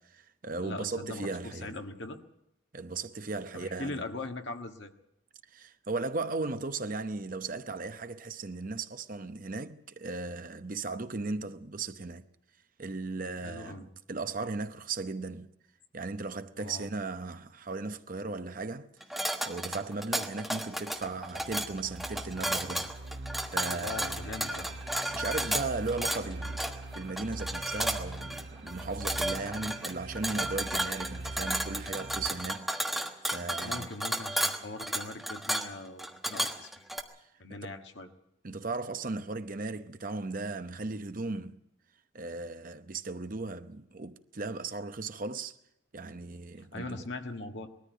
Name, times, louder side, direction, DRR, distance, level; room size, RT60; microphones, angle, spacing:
voice 1, 0.0-1.8 2.7-4.0 5.5-12.3 12.8-15.5 15.9-22.9 23.5-24.1 24.5-24.7 25.1-26.7 26.9-32.7 33.2-33.9 37.7-37.8 38.4-41.6 42.1-45.5 45.9-47.0, right 3 dB, 45° right, 0.8 m, -37 dB
voice 2, 0.6-2.2 3.5-4.9 13.4-13.9 16.6-16.9 23.7-24.7 33.6-36.8 37.4-38.1 46.7-47.7, left 2 dB, 65° left, 1.6 m, -40 dB
sound 1, 19.0-37.0, right 1 dB, ahead, 1.3 m, -33 dB
sound 2, 20.9-32.3, right 2 dB, 65° right, 1.9 m, -43 dB
20.5 x 14.0 x 9.3 m
head